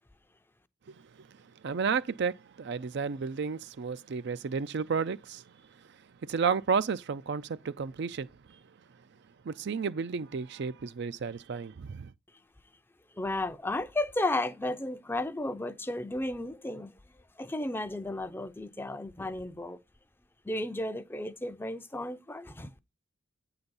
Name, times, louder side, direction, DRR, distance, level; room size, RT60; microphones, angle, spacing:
voice 1, 0.9-1.3 1.6-5.4 6.2-8.6 9.4-12.1, right 5 dB, 55° right, 0.4 m, -32 dB
voice 2, 13.2-16.9 17.4-19.8 20.5-22.7, left 2 dB, 10° left, 0.5 m, -33 dB
8.9 x 3.9 x 7.0 m
head